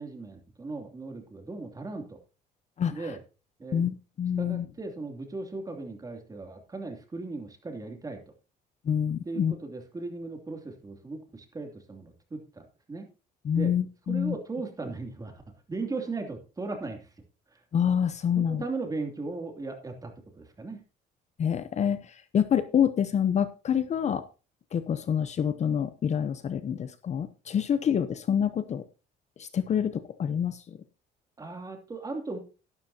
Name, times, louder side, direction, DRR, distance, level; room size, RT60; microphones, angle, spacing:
voice 1, 0.0-2.2 2.9-3.2 3.6-3.9 4.4-8.2 9.2-13.1 13.5-13.7 14.1-15.4 15.7-17.1 17.5-17.6 18.4-20.8 31.4-32.4, right 3 dB, 20° right, 4 dB, 2.8 m, -37 dB
voice 2, 3.7-4.6 8.8-9.5 13.4-14.3 17.7-18.6 21.4-24.3 24.7-28.9 29.4-30.8, left 8 dB, 40° left, 13 dB, 0.8 m, -27 dB
12.0 x 12.0 x 2.8 m, 0.32 s
cardioid pair, 110°, 17 cm